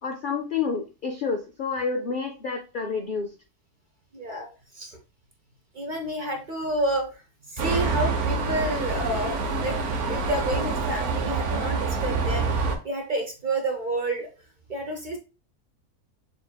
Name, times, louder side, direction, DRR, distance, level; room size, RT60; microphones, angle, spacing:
voice 1, 0.0-3.4, left 5 dB, 80° left, 4 dB, 0.4 m, -29 dB
voice 2, 4.1-4.5 4.7-5.0 5.7-7.1 7.4-9.7 10.1-12.5 12.8-14.3 14.7-15.2, right 1 dB, 45° right, 2 dB, 0.7 m, -29 dB
sound 1, 7.6-12.8, right 4 dB, 75° right, 1.3 m, -26 dB
6.7 x 2.7 x 2.2 m, 0.32 s
omnidirectional pair, 1.6 m